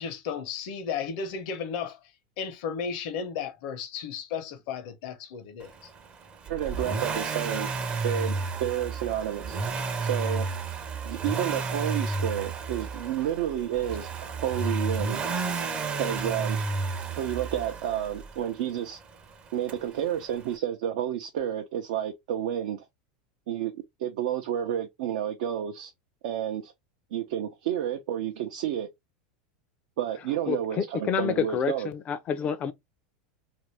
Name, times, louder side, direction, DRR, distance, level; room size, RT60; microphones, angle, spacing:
voice 1, 0.0-2.1 2.4-5.9, left 6 dB, 65° left, 0.9 m, -34 dB
Accelerating revving vroom, 6.5-18.4 19.7-19.8, right 4 dB, 30° right, 0.6 m, -31 dB
voice 2, 6.5-7.7 8.0-9.6 10.0-10.5 11.0-15.2 16.0-16.6 17.2-19.0 19.5-22.8 23.5-23.7 24.0-25.9 26.2-26.7 27.1-28.9 30.0-31.9, right 10 dB, 75° right, 0.6 m, -30 dB
voice 3, 30.5-32.7, left 7 dB, 35° left, 0.4 m, -28 dB
2.6 x 2.6 x 3.1 m
supercardioid pair, 130°, 4 cm